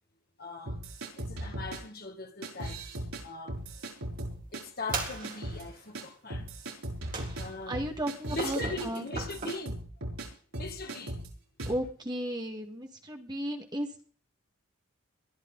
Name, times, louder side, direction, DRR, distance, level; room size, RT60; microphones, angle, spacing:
voice 1, 0.4-0.8 1.2-3.0 3.2-3.7 4.5-6.5 7.3-7.8 8.3-9.8 10.6-11.2, left 3 dB, 45° left, 1.9 m, -40 dB
sound 1, 0.7-1.8 2.4-3.2 3.5-4.6 4.9-5.6 5.9-6.0 6.3-10.3 10.5-11.3 11.6-11.8, right 1 dB, 80° right, 6.7 m, -38 dB
sound 2, 4.9-5.8 7.1-7.7 8.4-9.5, right 4 dB, 40° right, 4.1 m, -38 dB
voice 2, 7.3-9.1 11.7-14.1, equal, 20° right, 1.9 m, -35 dB
22.0 x 12.5 x 4.0 m
head